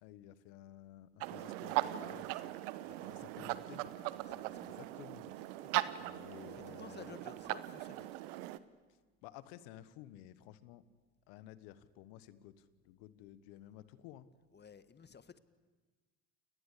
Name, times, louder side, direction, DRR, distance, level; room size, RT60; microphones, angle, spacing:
voice 1, 0.0-2.3 3.1-3.9 4.6-5.3 6.0-7.2 9.2-10.8 11.3-14.3, left 13 dB, 70° left, 15 dB, 1.5 m, -54 dB
sound 1, 1.2-8.6, right 16 dB, 75° right, 1.2 m, -39 dB
voice 2, 2.0-2.6 2.8-3.5 4.1-4.8 6.4-8.1 14.5-15.4, left 6 dB, 25° left, 13 dB, 1.7 m, -55 dB
29.5 x 19.5 x 8.6 m, 1.3 s
hypercardioid pair, 80°, 38 cm